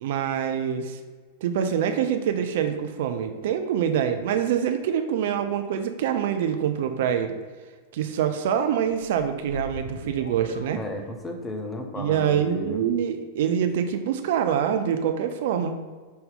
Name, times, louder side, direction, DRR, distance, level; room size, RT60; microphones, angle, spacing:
voice 1, 0.0-1.0 1.4-7.4 7.9-10.8 12.0-15.8, right 8 dB, 55° right, 7 dB, 0.3 m, -25 dB
sound 1, 8.8-11.5, left 1 dB, 80° left, 0.3 m, -40 dB
voice 2, 10.8-12.8, left 1 dB, 15° left, 3 dB, 0.6 m, -34 dB
5.2 x 2.7 x 3.6 m, 1.4 s
figure-of-eight pair, 90°, 0 cm